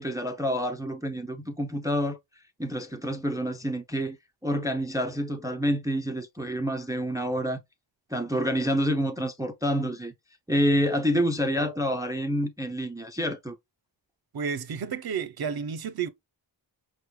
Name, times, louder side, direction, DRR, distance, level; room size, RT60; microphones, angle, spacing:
voice 1, 0.0-2.2 2.6-4.2 4.4-7.6 8.1-10.1 10.5-13.6, equal, 10° right, 0.4 m, -28 dB
voice 2, 14.3-16.1, right 6 dB, 55° right, 0.6 m, -31 dB
5.5 x 2.1 x 3.0 m
wide cardioid pair, 100°, 44 cm